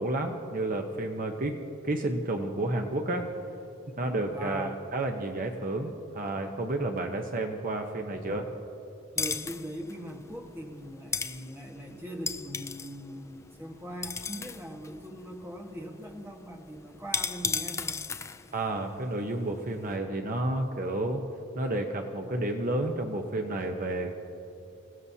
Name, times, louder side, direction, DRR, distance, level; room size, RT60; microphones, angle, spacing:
voice 1, 0.0-3.3 4.0-8.6 18.5-21.2 21.5-24.1, right 2 dB, 40° right, 3 dB, 0.9 m, -31 dB
voice 2, 1.3-1.6 4.3-4.7 9.1-18.0, equal, 10° right, 1 dB, 1.4 m, -41 dB
sound 1, 9.2-20.0, left 5 dB, 15° left, 0.4 m, -37 dB
28.0 x 17.0 x 2.8 m, 2.9 s
head